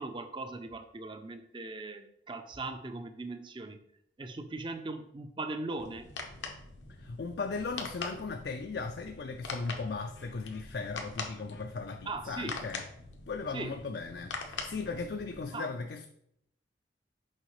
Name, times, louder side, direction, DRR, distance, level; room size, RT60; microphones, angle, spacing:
voice 1, 0.0-3.8 4.2-6.1 12.1-12.5 13.5-13.7 15.5-15.7, right 3 dB, 25° right, 8 dB, 0.4 m, -39 dB
sound 1, 5.8-15.4, left 4 dB, 85° left, 0.9 m, -43 dB
voice 2, 6.9-12.8 13.3-16.1, left 4 dB, 60° left, 5 dB, 0.4 m, -37 dB
6.4 x 5.0 x 3.1 m, 0.72 s
head